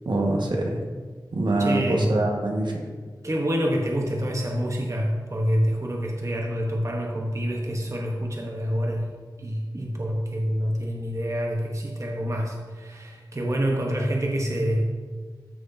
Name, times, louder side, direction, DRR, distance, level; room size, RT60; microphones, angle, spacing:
voice 1, 0.0-0.8 1.3-2.7, right 2 dB, 70° right, 0 dB, 1.4 m, -24 dB
voice 2, 1.6-2.2 3.2-9.1 9.4-14.9, equal, 40° right, 0 dB, 1.0 m, -27 dB
13.5 x 6.3 x 2.7 m, 1.5 s
wide cardioid pair, 65°, 8 cm